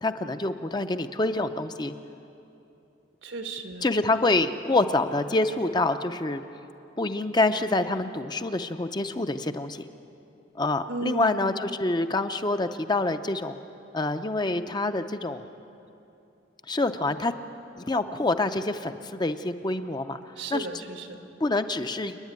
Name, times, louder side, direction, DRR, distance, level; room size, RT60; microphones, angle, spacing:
voice 1, 0.0-1.9 3.8-6.4 7.0-9.8 10.5-13.5 13.9-15.5 16.7-17.3 17.8-20.2 20.5-20.7 21.4-22.2, left 2 dB, 25° left, 9 dB, 0.6 m, -26 dB
voice 2, 3.2-3.9 10.9-11.4 20.4-21.2, right 2 dB, 85° right, 6 dB, 1.7 m, -34 dB
29.5 x 9.8 x 9.5 m, 2.8 s
head